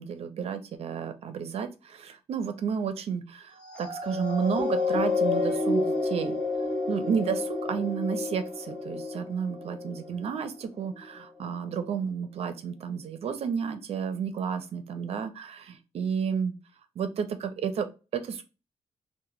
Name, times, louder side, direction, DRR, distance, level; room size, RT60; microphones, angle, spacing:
voice 1, 0.0-6.4 6.9-16.5 17.0-18.4, right 7 dB, 55° right, 9 dB, 0.5 m, -31 dB
sound 1, 3.6-10.3 10.9-11.1, left 3 dB, 10° left, 0.6 m, -30 dB
2.9 x 2.1 x 3.0 m, 0.31 s
wide cardioid pair, 165°, 12 cm